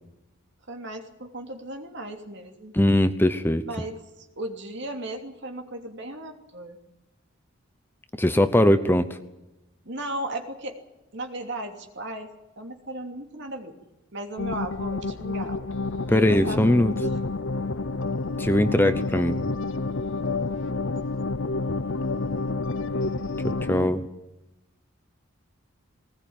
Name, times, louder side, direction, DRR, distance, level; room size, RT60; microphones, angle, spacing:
voice 1, 0.7-2.8 3.6-6.8 9.8-10.8 11.1-12.3 12.6-13.8 14.1-15.7 16.1-16.6 16.9-17.2, right 1 dB, 55° right, 4 dB, 2.9 m, -36 dB
voice 2, 2.7-3.6 8.2-9.1 16.1-16.9 18.4-19.4 23.7-24.1, left 1 dB, 10° left, 10 dB, 0.8 m, -20 dB
sound 1, 14.4-23.9, left 3 dB, 60° left, 0.7 m, -29 dB
19.0 x 19.0 x 8.9 m, 0.98 s
head